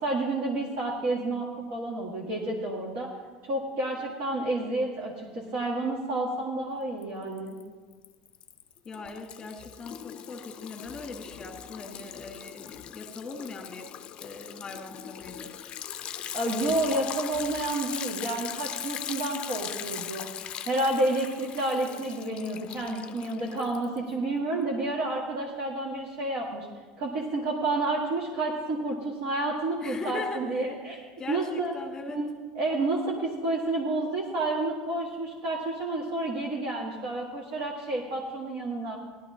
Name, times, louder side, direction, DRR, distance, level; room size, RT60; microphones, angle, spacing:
voice 1, 0.0-3.1 3.4-7.6 16.3-20.3 20.6-26.7 27.0-31.0 31.3-31.7 32.1-39.0, right 2 dB, 60° right, -3 dB, 1.7 m, -30 dB
Liquid, 7.0-7.6 7.9-24.1, left 10 dB, 35° left, 0.4 m, -40 dB
voice 2, 8.8-13.9 14.2-15.5 29.8-30.6 31.2-32.2, left 3 dB, 20° left, 2 dB, 1.7 m, -40 dB
17.0 x 12.0 x 2.8 m, 1.4 s
supercardioid pair, 140°, 3 cm